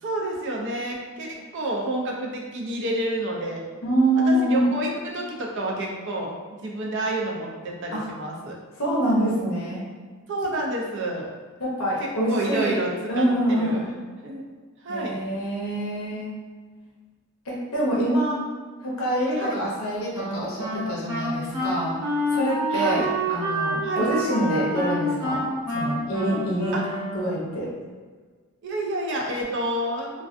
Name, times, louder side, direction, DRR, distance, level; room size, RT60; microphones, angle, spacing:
voice 1, 0.0-3.6 4.3-6.3 6.6-8.6 10.3-11.3 12.0-13.9 14.2-14.5 14.8-15.2 19.4-19.6 22.7-23.1 23.8-24.1 26.7-26.8 28.6-30.1, right 1 dB, 55° right, -1 dB, 0.4 m, -29 dB
voice 2, 3.8-4.6 7.9-8.0 8.8-9.8 11.6-12.8 13.1-13.9 14.9-16.3 17.5-18.4 18.8-22.0 22.3-23.0 23.3-25.4 25.7-26.8 27.1-27.7, right 1 dB, 65° left, -5 dB, 0.7 m, -25 dB
Wind instrument woodwind instrument, 20.1-27.5, right 1 dB, 30° right, 1.1 m, -28 dB
2.3 x 2.2 x 2.4 m, 1.4 s
head